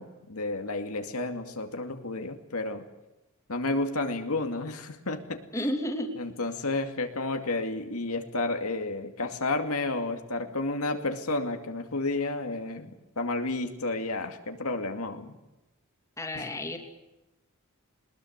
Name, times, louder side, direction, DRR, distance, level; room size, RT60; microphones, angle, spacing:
voice 1, 0.0-2.8 3.5-5.7 6.2-15.4 16.3-16.5, left 2 dB, 90° left, 5 dB, 2.4 m, -31 dB
voice 2, 5.5-6.1 16.2-16.8, left 1 dB, 15° left, 4 dB, 2.8 m, -31 dB
20.5 x 20.5 x 8.1 m, 1.0 s
head